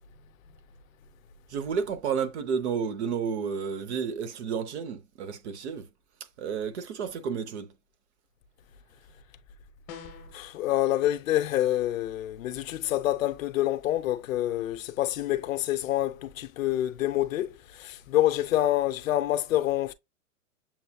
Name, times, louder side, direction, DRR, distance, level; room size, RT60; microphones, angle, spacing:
voice 1, 1.5-5.9 6.4-7.7, right 6 dB, 45° right, 0.7 m, -31 dB
sound 1, 9.9-10.4, left 6 dB, 30° left, 0.9 m, -43 dB
voice 2, 10.3-19.9, left 14 dB, 60° left, 0.6 m, -27 dB
7.1 x 2.6 x 2.2 m
hypercardioid pair, 150°, 47 cm